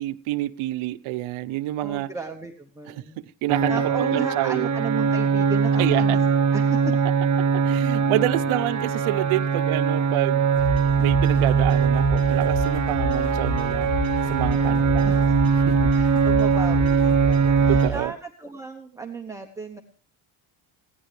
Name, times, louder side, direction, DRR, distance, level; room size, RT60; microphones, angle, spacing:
voice 1, 0.0-2.1 2.9-3.0 3.4-3.7 4.1-4.7 5.8-6.2 7.5-10.5 11.0-13.9 14.3-15.9 17.7-18.1, right 16 dB, 80° right, 1.0 m, -28 dB
voice 2, 1.8-3.2 3.7-6.2 6.5-6.9 14.5-15.4 15.9-19.8, right 4 dB, 5° right, 1.0 m, -35 dB
sound 1, 3.5-17.9, right 6 dB, 40° right, 1.2 m, -21 dB
sound 2, 10.5-18.0, equal, 45° left, 7.9 m, -29 dB
21.5 x 16.0 x 3.3 m
cardioid pair, 165°, 49 cm